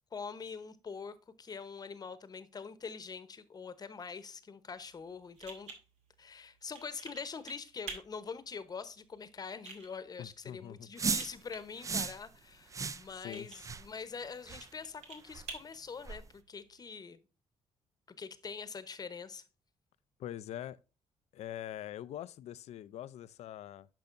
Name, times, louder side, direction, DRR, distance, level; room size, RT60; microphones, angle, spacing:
voice 1, 0.1-5.7 6.2-17.2 18.2-19.4, left 5 dB, 35° left, 0.9 m, -44 dB
sound 1, 4.8-16.8, right 4 dB, 85° right, 2.1 m, -52 dB
voice 2, 10.2-10.9 13.2-13.5 20.2-20.8 21.3-23.9, left 12 dB, 75° left, 0.5 m, -43 dB
sound 2, 11.0-11.3 11.8-12.2 12.7-13.0 13.6-13.8 14.5-14.7 15.3-15.4 16.1-16.2, right 5 dB, 30° right, 0.5 m, -35 dB
10.5 x 5.5 x 2.5 m
cardioid pair, 105°, 11 cm